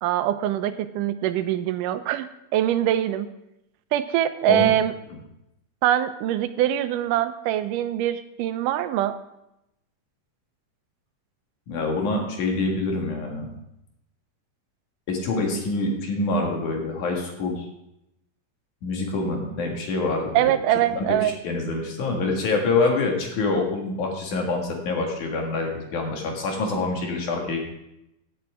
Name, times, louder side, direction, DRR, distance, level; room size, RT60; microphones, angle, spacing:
voice 1, 0.0-3.3 3.9-4.9 5.8-9.1 20.3-21.3, right 12 dB, 85° right, 11 dB, 2.2 m, -23 dB
voice 2, 11.7-13.5 15.1-17.7 18.8-20.5 21.0-27.6, left 3 dB, 70° left, 1 dB, 3.3 m, -26 dB
15.5 x 8.7 x 3.6 m, 0.85 s
omnidirectional pair, 3.7 m